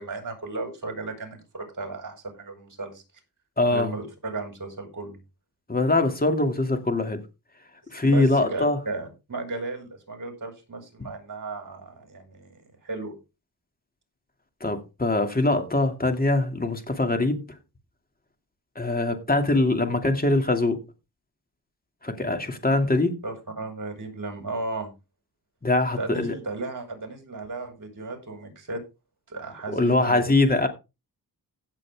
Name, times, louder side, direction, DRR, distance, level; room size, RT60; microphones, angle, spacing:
voice 1, 0.0-3.0 3.7-5.2 8.0-13.1 23.2-24.9 26.0-28.8 29.3-30.3, right 3 dB, 50° right, 5.6 m, -35 dB
voice 2, 3.6-3.9 5.7-7.2 7.9-8.8 14.6-17.4 18.8-20.8 22.0-23.2 25.6-26.3 29.7-30.7, left 2 dB, 25° left, 2.6 m, -23 dB
16.5 x 7.5 x 3.6 m
wide cardioid pair, 85°, 39 cm